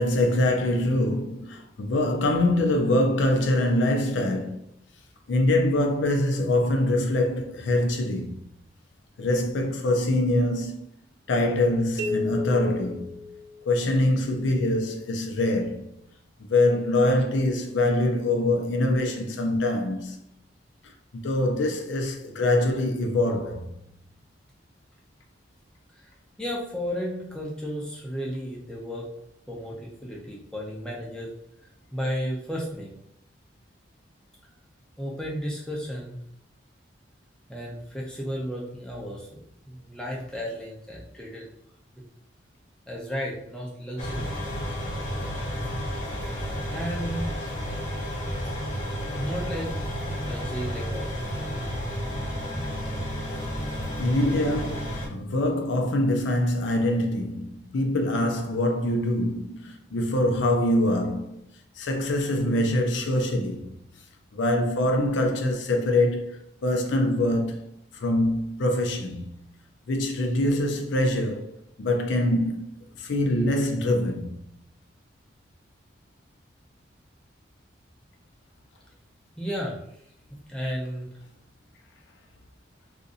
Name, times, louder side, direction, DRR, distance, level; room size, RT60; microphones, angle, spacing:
voice 1, 0.0-4.6 5.3-8.4 9.2-10.8 11.3-13.2 13.7-15.8 16.5-20.2 20.8-23.7 53.9-61.4 61.8-63.7 64.3-67.6 67.9-69.3 69.9-72.7 73.0-74.4, left 1 dB, 75° left, 0.4 m, -24 dB
sound 1, 12.0-13.9, left 3 dB, 85° right, 0.4 m, -32 dB
voice 2, 26.4-29.1 29.5-31.3 31.9-32.9 35.0-36.2 37.5-39.4 39.6-41.5 42.9-44.3 46.7-47.3 49.1-49.7 50.2-51.8 79.4-79.8 80.5-81.1, equal, 5° left, 0.6 m, -33 dB
sound 2, 44.0-55.1, equal, 40° left, 0.9 m, -31 dB
2.6 x 2.5 x 3.8 m
head